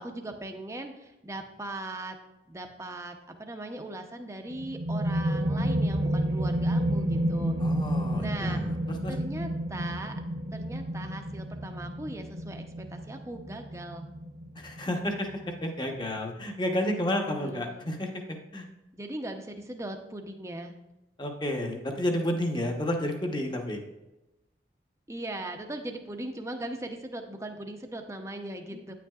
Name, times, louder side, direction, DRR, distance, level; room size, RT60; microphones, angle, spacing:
voice 1, 0.0-2.2 2.5-3.1 3.4-7.6 8.2-8.6 9.1-10.1 10.5-14.1 17.1-17.9 18.9-20.8 25.1-28.9, right 1 dB, 15° right, 5 dB, 0.7 m, -39 dB
sound 1, 4.5-15.9, right 1 dB, 70° right, 0.8 m, -30 dB
voice 2, 7.6-9.1 14.5-18.7 21.2-23.8, left 1 dB, 25° left, 3 dB, 1.0 m, -31 dB
9.4 x 9.2 x 2.4 m, 0.99 s
head